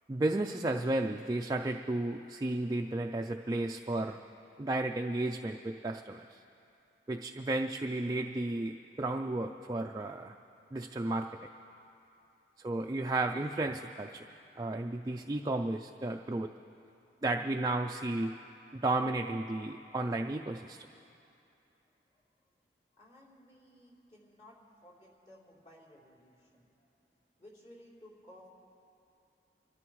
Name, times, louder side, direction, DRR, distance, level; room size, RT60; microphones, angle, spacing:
voice 1, 0.1-4.2 4.6-6.4 7.1-10.4 10.7-11.3 12.6-14.2 14.6-16.5 17.2-18.4 18.7-20.9, right 2 dB, 20° right, 3 dB, 0.4 m, -33 dB
voice 2, 23.0-26.9 27.4-28.5, left 1 dB, 40° left, -6 dB, 3.3 m, -57 dB
27.5 x 13.0 x 3.1 m, 2.7 s
head